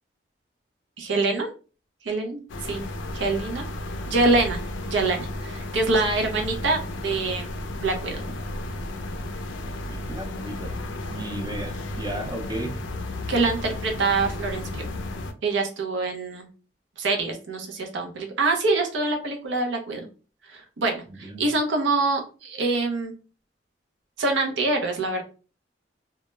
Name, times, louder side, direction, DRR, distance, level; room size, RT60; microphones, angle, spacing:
voice 1, 1.0-1.5 2.0-2.8 3.1-3.6 4.1-4.6 4.9-8.2 13.3-14.9 15.4-16.5 17.0-20.0 20.4-23.1 24.2-25.2, right 3 dB, 75° right, 3 dB, 0.5 m, -25 dB
sound 1, 2.5-15.3, left 1 dB, 90° left, 0.4 m, -33 dB
voice 2, 9.9-12.8 21.2-21.5, right 1 dB, 20° right, 4 dB, 0.5 m, -35 dB
2.2 x 2.0 x 3.0 m, 0.36 s
head